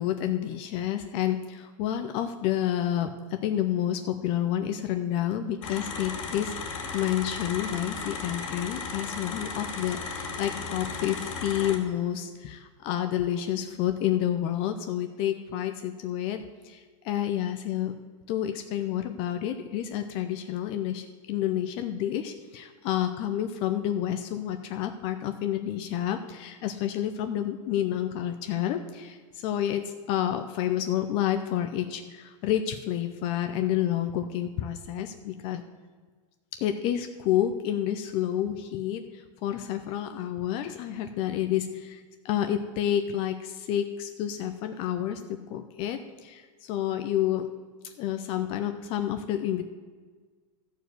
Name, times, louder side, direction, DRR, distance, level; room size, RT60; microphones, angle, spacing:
voice 1, 0.0-17.9 18.3-35.6 36.5-47.5 47.8-49.6, left 11 dB, 35° left, 8 dB, 0.5 m, -29 dB
sound 1, 5.6-11.8, left 4 dB, 75° left, 2.5 m, -35 dB
13.0 x 4.7 x 7.8 m, 1.5 s
supercardioid pair, 165°, 17 cm